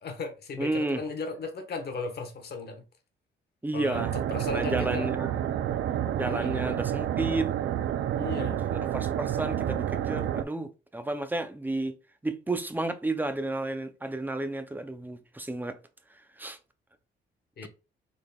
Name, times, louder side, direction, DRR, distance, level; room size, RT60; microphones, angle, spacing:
voice 1, 0.0-2.8 3.7-5.1 6.2-6.8 8.1-8.7 17.6-17.7, left 3 dB, 55° left, 1.0 m, -36 dB
voice 2, 0.6-1.0 3.6-4.1 4.5-5.3 6.1-7.5 8.7-11.9 12.2-15.8 16.4-16.6, right 2 dB, 10° right, 0.5 m, -32 dB
sound 1, 3.9-10.4, right 10 dB, 70° right, 0.4 m, -29 dB
3.9 x 3.4 x 2.3 m
cardioid pair, 90°, 20 cm